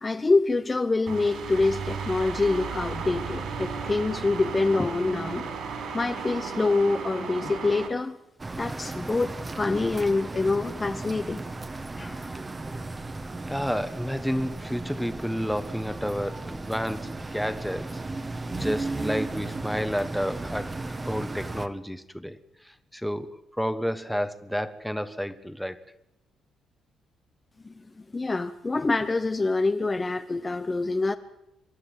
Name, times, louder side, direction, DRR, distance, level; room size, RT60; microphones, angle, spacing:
voice 1, 0.0-5.5 5.9-8.2 8.6-11.4 12.0-12.3 27.6-27.7 28.1-31.1, left 3 dB, 25° left, 0.9 m, -26 dB
sound 1, 1.1-7.9, right 5 dB, 65° right, 5.3 m, -34 dB
sound 2, 8.4-21.7, right 2 dB, 25° right, 1.4 m, -35 dB
voice 2, 13.4-18.0 18.5-20.8 21.0-22.4 22.6-25.8, equal, ahead, 1.3 m, -30 dB
25.0 x 11.5 x 9.6 m
cardioid pair, 90°, 0 cm